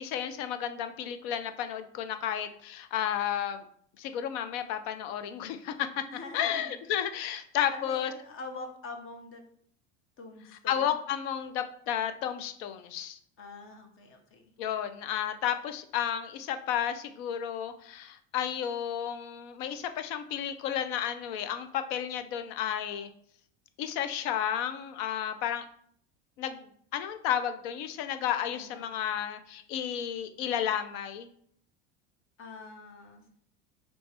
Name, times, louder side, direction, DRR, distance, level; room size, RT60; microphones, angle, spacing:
voice 1, 0.0-3.6 4.0-6.0 6.3-8.1 10.7-13.2 14.6-23.1 23.8-25.6 26.4-26.6 26.9-31.3, left 9 dB, 65° left, 9 dB, 0.6 m, -32 dB
voice 2, 6.1-6.8 7.7-9.4 10.2-11.0 13.4-14.4 28.5-28.9 32.4-33.2, left 3 dB, 35° left, 4 dB, 1.0 m, -44 dB
3.2 x 3.2 x 4.4 m, 0.63 s
hypercardioid pair, 90°, 34 cm